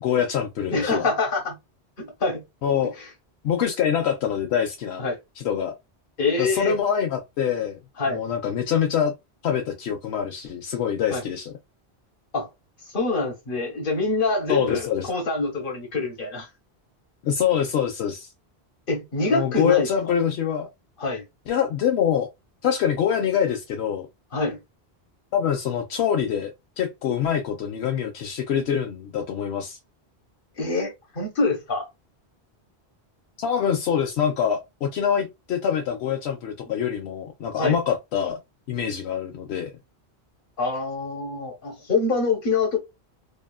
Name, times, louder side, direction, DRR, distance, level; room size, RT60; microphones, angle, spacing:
voice 1, 0.0-1.1 2.6-3.0 3.4-5.0 5.4-5.7 6.4-7.8 8.1-9.1 9.4-11.5 14.5-15.1 17.2-18.3 19.3-20.7 21.5-22.3 22.6-24.1 25.3-26.5 26.8-29.8 33.4-38.4 38.7-39.7, left 8 dB, 80° left, 0.8 m, -25 dB
voice 2, 0.7-1.5 2.0-2.4 3.0-3.1 5.0-5.2 6.2-6.8 8.0-8.2 11.1-11.2 12.3-12.5 12.9-16.5 18.9-19.9 21.0-21.2 24.3-24.6 30.6-31.9 37.6-37.8 40.6-42.8, left 3 dB, 55° left, 1.3 m, -25 dB
2.9 x 2.3 x 2.2 m
omnidirectional pair, 1.1 m